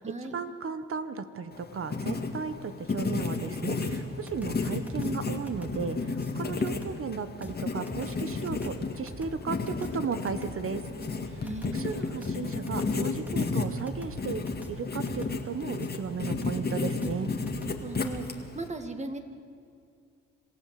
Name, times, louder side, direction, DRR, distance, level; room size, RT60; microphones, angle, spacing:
voice 1, 0.0-10.8 11.2-11.4 11.7-14.4 14.7-17.3, right 5 dB, 45° right, 11 dB, 1.3 m, -35 dB
Writing, 1.5-18.7, left 3 dB, 30° left, 2.1 m, -33 dB
sound 1, 3.8-18.2, equal, 5° right, 2.3 m, -45 dB
voice 2, 11.4-12.1 17.8-18.2 18.5-19.2, right 2 dB, 20° right, 6 dB, 2.2 m, -37 dB
27.0 x 16.0 x 7.7 m, 2.3 s
cardioid pair, 90°, 30 cm